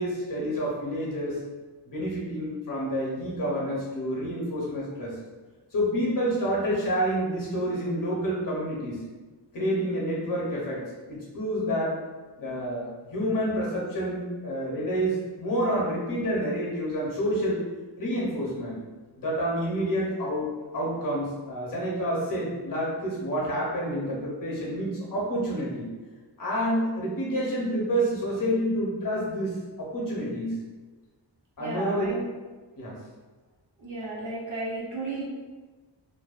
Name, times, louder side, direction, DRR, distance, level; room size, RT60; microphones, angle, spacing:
voice 1, 0.0-1.4 1.9-5.2 5.7-9.0 9.5-10.8 11.1-12.0 12.4-17.6 18.0-18.7 19.2-25.9 26.4-30.6 31.6-32.2 32.8-33.0, equal, 45° left, -4 dB, 0.8 m, -28 dB
voice 2, 31.6-32.3 33.8-35.2, right 2 dB, 45° right, -5 dB, 0.7 m, -33 dB
2.6 x 2.2 x 2.4 m, 1.3 s
wide cardioid pair, 155°, 45 cm